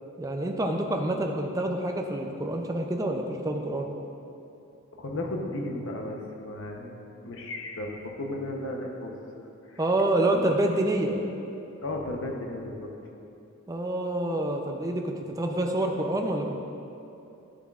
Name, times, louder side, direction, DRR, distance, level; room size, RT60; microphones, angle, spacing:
voice 1, 0.2-3.9 9.8-11.1 13.7-16.6, right 1 dB, 15° right, 2 dB, 0.4 m, -27 dB
voice 2, 4.9-6.9 7.2-9.2 9.7-9.8 10.3-10.4 11.0-11.1 11.8-12.9, left 1 dB, 60° left, 1 dB, 0.8 m, -34 dB
10.5 x 7.1 x 2.4 m, 2.8 s
head